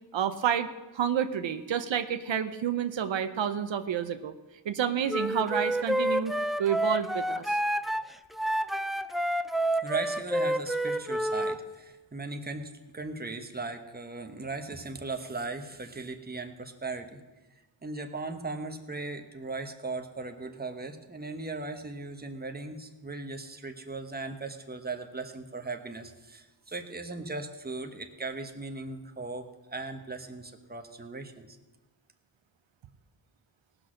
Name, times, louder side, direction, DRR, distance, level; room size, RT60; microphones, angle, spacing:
voice 1, 0.1-0.7 0.9-4.4 4.6-6.3 6.6-7.6, right 8 dB, 85° right, 9 dB, 0.8 m, -29 dB
Wind instrument woodwind instrument, 5.1-11.6, right 1 dB, ahead, 0.4 m, -29 dB
voice 2, 9.8-17.2 17.8-31.6, right 3 dB, 20° right, 6 dB, 1.2 m, -38 dB
18.0 x 6.2 x 6.4 m, 1.2 s
wide cardioid pair, 85°, 44 cm